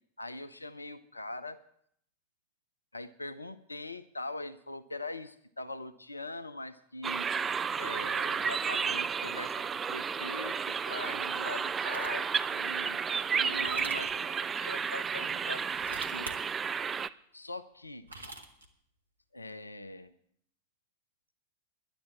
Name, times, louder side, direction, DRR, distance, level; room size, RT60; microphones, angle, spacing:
voice 1, 0.2-1.6 2.9-7.3 7.8-13.0 13.3-16.4 17.3-18.1 19.3-20.1, left 2 dB, 80° left, 13 dB, 0.6 m, -42 dB
sound 1, 7.0-17.1, right 6 dB, 20° right, 0.4 m, -32 dB
sound 2, 11.9-12.3 13.5-14.1 15.7-16.4 17.8-18.7, right 2 dB, 80° right, 1.5 m, -45 dB
11.0 x 10.5 x 8.4 m, 0.69 s
figure-of-eight pair, 90°, 0 cm